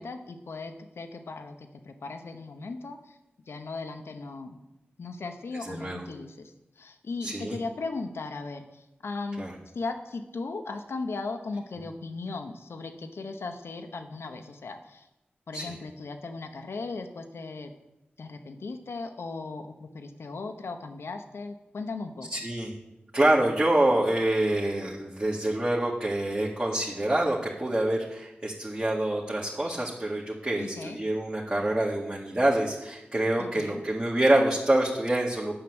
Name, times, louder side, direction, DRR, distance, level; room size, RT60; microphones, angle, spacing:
voice 1, 0.0-3.2 3.5-4.6 5.0-9.4 9.7-15.1 15.5-17.7 18.2-22.4 30.6-31.0 33.4-33.8, left 3 dB, 80° left, 6 dB, 0.9 m, -37 dB
voice 2, 5.6-6.0 7.2-7.6 9.4-9.5 15.5-15.8 22.3-22.7 23.1-35.5, right 1 dB, 35° right, -5 dB, 1.9 m, -26 dB
9.0 x 5.8 x 7.9 m, 0.96 s
cardioid pair, 40°, 4 cm